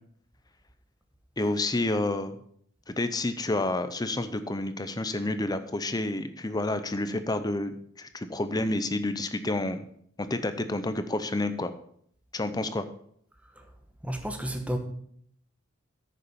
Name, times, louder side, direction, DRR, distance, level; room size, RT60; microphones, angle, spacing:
voice 1, 1.4-2.4 2.9-9.8 10.2-11.7 12.3-12.9, left 2 dB, 20° left, 0.7 m, -29 dB
voice 2, 14.0-14.8, equal, 5° right, 1.1 m, -31 dB
9.3 x 6.8 x 5.5 m
head